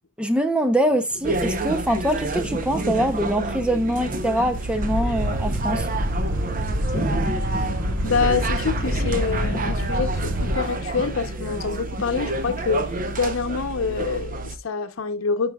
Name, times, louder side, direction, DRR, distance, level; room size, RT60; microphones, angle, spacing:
voice 1, 0.2-5.9, right 1 dB, 5° right, 0.5 m, -23 dB
sound 1, 1.1-13.2, left 2 dB, 35° left, 1.5 m, -37 dB
sound 2, 1.2-14.6, right 2 dB, 40° right, 0.7 m, -29 dB
sound 3, 4.3-10.6, equal, 80° right, 1.1 m, -27 dB
voice 2, 8.0-12.8 13.1-15.5, left 5 dB, 85° left, 0.7 m, -26 dB
11.0 x 5.3 x 2.3 m
head